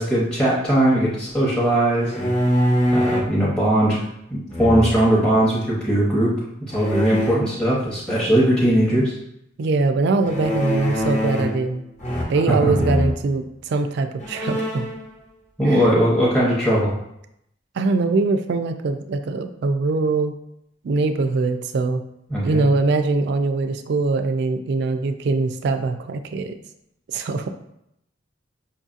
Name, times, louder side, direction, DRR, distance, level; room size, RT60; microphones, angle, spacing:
voice 1, 0.0-2.3 2.9-4.0 4.3-6.3 6.6-9.1 12.5-12.7 15.6-16.9 22.3-22.6, right 1 dB, 5° left, -7 dB, 0.6 m, -19 dB
sound 1, 2.0-3.3 4.5-5.2 6.7-7.3 10.2-11.6 12.0-12.5 12.7-13.2 13.8-13.9 14.2-15.0, equal, 40° left, 0.8 m, -23 dB
voice 2, 9.6-11.8 12.3-14.9 15.6-15.8 17.8-20.3 20.8-22.0 22.4-26.6 27.1-27.5, right 3 dB, 60° right, 8 dB, 0.3 m, -22 dB
5.4 x 2.6 x 2.4 m, 0.78 s
head